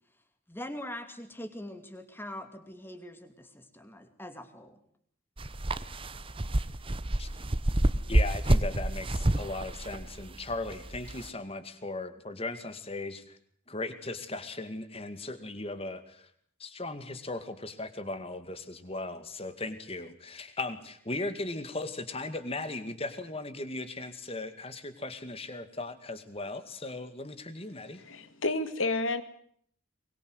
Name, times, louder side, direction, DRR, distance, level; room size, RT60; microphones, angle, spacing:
voice 1, 0.5-4.8, left 1 dB, 10° left, 8 dB, 2.6 m, -42 dB
sound 1, 5.4-11.3, right 1 dB, 25° right, 0.9 m, -28 dB
voice 2, 8.1-13.4 13.7-16.3 16.6-28.0, left 2 dB, 30° left, 11 dB, 2.2 m, -37 dB
voice 3, 27.8-29.2, left 2 dB, 75° left, 12 dB, 2.1 m, -31 dB
23.5 x 21.5 x 8.1 m, 0.64 s
head